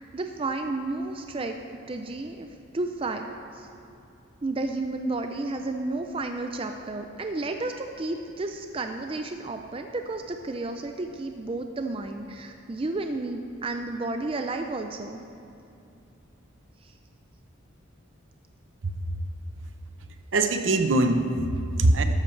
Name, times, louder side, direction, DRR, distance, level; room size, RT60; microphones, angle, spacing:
voice 1, 0.1-2.5 2.7-3.3 3.5-3.7 4.4-15.2 16.8-16.9, right 2 dB, 25° right, 5 dB, 0.4 m, -32 dB
voice 2, 20.3-22.0, right 2 dB, 70° right, 7 dB, 0.8 m, -22 dB
13.0 x 12.0 x 3.3 m, 2.7 s
head